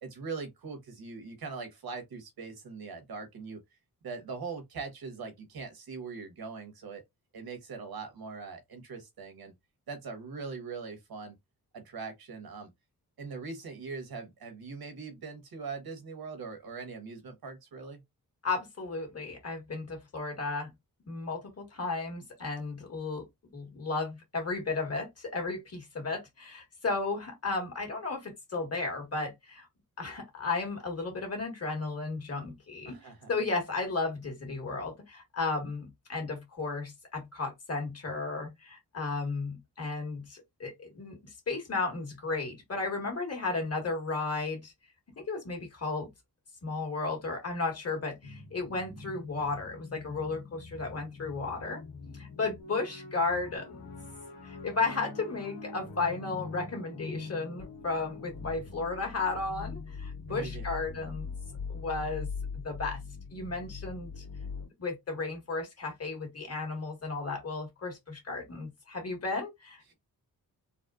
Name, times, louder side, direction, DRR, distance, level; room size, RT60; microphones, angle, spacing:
voice 1, 0.0-3.6 4.0-7.0 7.3-9.5 9.9-11.4 11.7-12.7 13.2-18.0 32.8-33.3 60.3-60.6, right 4 dB, 85° right, 1.4 m, -41 dB
voice 2, 18.4-20.7 21.1-23.3 23.5-29.7 30.0-33.0 33.3-41.2 41.5-44.7 45.1-46.1 46.6-51.8 52.1-53.8 54.4-61.3 61.7-62.3 62.6-63.0 63.3-64.2 64.8-69.9, left 3 dB, 40° left, 1.7 m, -34 dB
Oberheim Panned Voices, 48.2-64.7, left 4 dB, 75° left, 1.6 m, -43 dB
4.0 x 2.2 x 2.5 m
wide cardioid pair, 95°, 36 cm